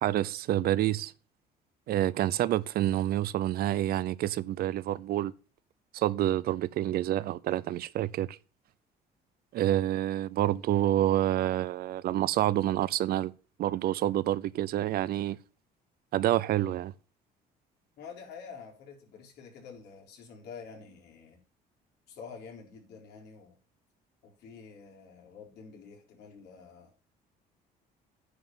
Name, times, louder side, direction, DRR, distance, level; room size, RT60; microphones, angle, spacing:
voice 1, 0.0-1.1 1.9-5.3 5.9-8.4 9.5-13.3 13.6-15.4 16.1-16.9, right 13 dB, 65° right, 0.6 m, -28 dB
voice 2, 18.0-21.4 22.1-23.6 24.2-26.9, left 5 dB, 80° left, 3.8 m, -48 dB
9.4 x 5.5 x 7.1 m
cardioid pair, 110°, 17 cm